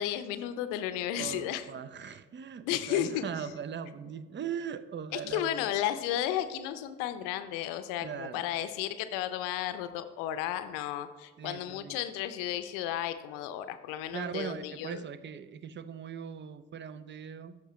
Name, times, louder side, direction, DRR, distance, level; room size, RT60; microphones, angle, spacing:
voice 1, 0.0-1.6 2.6-3.2 5.1-15.0, left 11 dB, 75° left, 11 dB, 0.6 m, -33 dB
voice 2, 1.2-5.7 8.0-8.5 11.4-12.0 14.1-17.6, right 8 dB, 35° right, 14 dB, 0.5 m, -40 dB
13.5 x 5.1 x 3.1 m, 1.4 s
hypercardioid pair, 45°, 33 cm